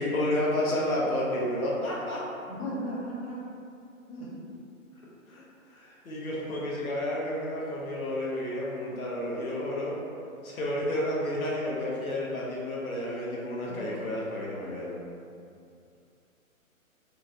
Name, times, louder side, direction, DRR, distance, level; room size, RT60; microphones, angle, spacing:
voice 1, 0.0-2.2 5.3-10.0 10.4-14.9, left 1 dB, 85° left, -5 dB, 0.9 m, -31 dB
voice 2, 2.5-3.4 4.1-4.3 13.7-13.8, equal, 25° left, -10 dB, 1.0 m, -35 dB
3.1 x 2.6 x 2.4 m, 2.5 s
hypercardioid pair, 135°, 41 cm